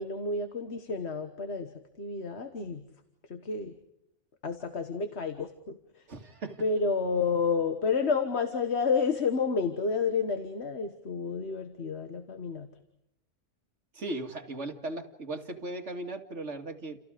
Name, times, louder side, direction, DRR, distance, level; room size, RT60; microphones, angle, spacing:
voice 1, 0.0-1.7 2.0-2.8 3.3-3.7 4.4-5.8 6.6-12.7, left 5 dB, 60° left, 7 dB, 1.7 m, -30 dB
voice 2, 6.1-6.6 13.9-17.0, right 2 dB, 70° right, 4 dB, 2.4 m, -37 dB
30.0 x 29.0 x 5.1 m, 0.80 s
omnidirectional pair, 1.2 m